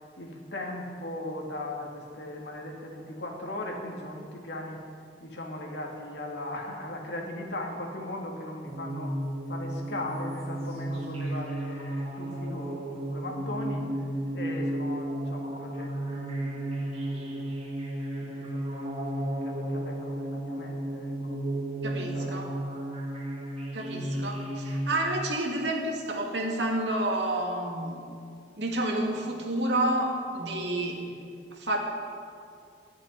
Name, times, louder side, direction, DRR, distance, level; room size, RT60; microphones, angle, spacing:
voice 1, 0.2-4.8 5.2-9.1 9.5-13.9 14.3-17.5 18.2-21.4 22.1-22.5 31.0-31.3, left 1 dB, 75° left, 0 dB, 2.5 m, -39 dB
sound 1, 8.6-25.0, right 1 dB, 35° right, 2.3 m, -33 dB
voice 2, 21.8-22.5 23.7-28.1 28.6-31.1 31.5-31.8, right 1 dB, 75° right, 0 dB, 2.2 m, -29 dB
13.5 x 7.3 x 9.8 m, 2.3 s
head